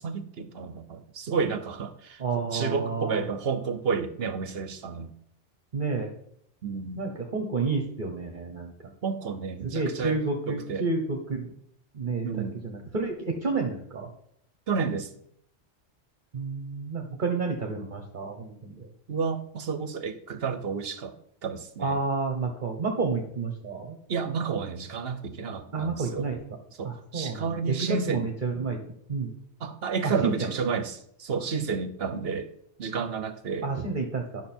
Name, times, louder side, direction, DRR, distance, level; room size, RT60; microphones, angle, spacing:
voice 1, 0.0-2.2 2.5-5.1 6.6-7.0 9.0-10.2 10.5-10.8 12.2-12.6 14.7-15.1 19.1-21.1 21.4-22.0 24.1-26.2 26.8-28.3 29.6-32.5 32.8-33.7, right 5 dB, 60° right, 11 dB, 1.1 m, -31 dB
voice 2, 2.2-3.2 5.7-6.1 7.0-8.7 9.6-11.5 11.9-12.3 12.6-14.1 16.3-18.9 21.8-24.0 25.7-26.4 26.8-28.8 29.1-29.3 30.0-30.5 33.6-34.4, right 4 dB, 45° right, 2 dB, 1.3 m, -30 dB
11.5 x 6.2 x 4.4 m, 0.70 s
omnidirectional pair, 1.2 m